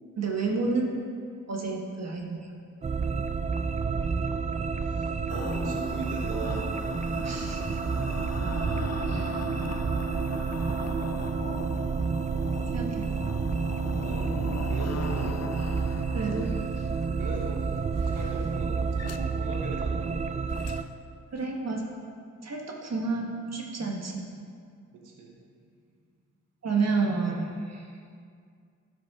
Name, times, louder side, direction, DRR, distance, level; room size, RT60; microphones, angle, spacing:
voice 1, 0.2-0.9 1.5-2.5 7.2-7.8 9.1-9.4 12.7-13.1 16.1-16.5 21.3-21.9 22.4-24.3 26.6-27.9, right 4 dB, 55° right, 0 dB, 1.5 m, -30 dB
sound 1, 2.8-20.8, right 5 dB, 25° right, 0.4 m, -29 dB
voice 2, 4.8-6.7 13.9-15.4 17.2-20.1 24.9-25.3, right 3 dB, 85° right, -1 dB, 1.3 m, -39 dB
sound 2, 5.3-19.2 20.5-20.9 21.4-21.5, left 6 dB, 55° left, 0.6 m, -41 dB
12.0 x 6.0 x 3.7 m, 2.2 s
cardioid pair, 50°, 31 cm